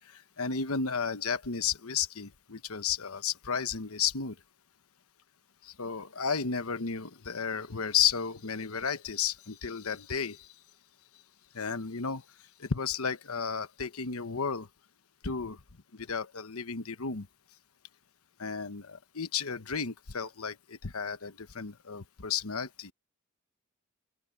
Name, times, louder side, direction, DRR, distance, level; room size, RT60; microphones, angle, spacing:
voice 1, 0.4-4.3 5.8-10.4 11.5-12.2 12.7-14.7 15.2-15.6 16.1-17.3 18.4-20.5 20.9-22.9, left 6 dB, 80° left, 1.1 m, -32 dB
open air
head